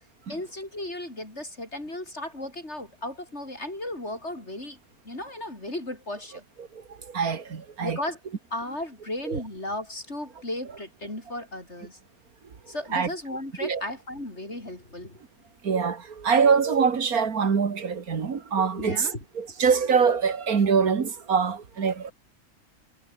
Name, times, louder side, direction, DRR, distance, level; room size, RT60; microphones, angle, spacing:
voice 1, 0.3-4.8 5.0-6.4 7.8-8.2 8.5-12.0 12.7-15.2 18.8-19.2, left 1 dB, 50° left, 6.6 m, -35 dB
voice 2, 7.1-8.0 9.3-9.4 12.9-13.1 13.6-13.8 15.6-22.1, right 6 dB, 90° right, 2.3 m, -24 dB
omnidirectional pair, 1.5 m